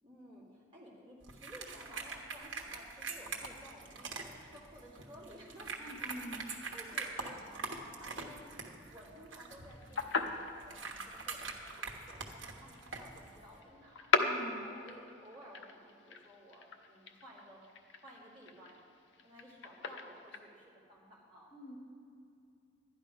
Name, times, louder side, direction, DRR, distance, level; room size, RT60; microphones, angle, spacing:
voice 1, 0.0-8.5 8.7-14.1 14.5-17.6 18.0-18.8 19.2-21.5, equal, 25° right, -6 dB, 2.6 m, -55 dB
sound 1, 1.2-13.6, right 4 dB, 85° right, 1.2 m, -44 dB
voice 2, 5.8-6.5 14.2-14.7 21.5-21.8, equal, 30° left, -2 dB, 1.3 m, -46 dB
sound 2, 9.7-20.4, left 4 dB, 75° left, 0.7 m, -38 dB
11.5 x 10.5 x 5.1 m, 2.6 s
head